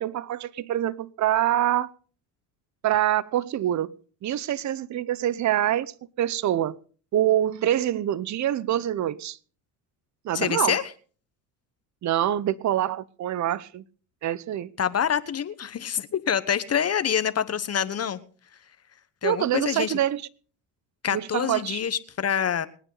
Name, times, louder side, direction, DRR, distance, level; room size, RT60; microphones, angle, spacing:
voice 1, 0.0-1.9 2.8-3.9 4.2-5.9 6.2-6.8 7.1-9.4 10.2-10.8 12.0-13.8 14.2-14.7 19.2-20.2 21.1-21.8, right 12 dB, 45° right, 0.8 m, -25 dB
voice 2, 10.3-10.8 14.8-18.2 19.2-20.0 21.0-22.7, left 8 dB, 35° left, 1.1 m, -26 dB
25.5 x 9.2 x 4.0 m
supercardioid pair, 85°, 42 cm